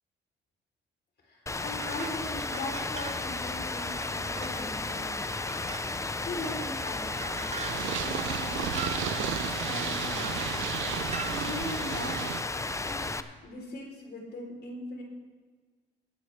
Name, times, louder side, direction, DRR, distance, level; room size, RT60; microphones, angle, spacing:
voice 1, 1.2-9.4 9.7-12.2 12.8-13.0 13.4-15.0, left 2 dB, 55° left, 1 dB, 3.5 m, -40 dB
Rain, 1.5-13.2, left 3 dB, 15° left, 0.6 m, -33 dB
sound 1, 1.7-3.3 3.5-3.6 3.9-4.6 5.3-6.0 6.4-6.5 6.8-9.1 9.9-10.8 11.1-11.4, right 7 dB, 35° right, 0.8 m, -42 dB
Purr, 7.6-12.4, right 13 dB, 75° right, 0.5 m, -34 dB
20.5 x 9.6 x 3.3 m, 1.4 s
cardioid pair, 90°, 20 cm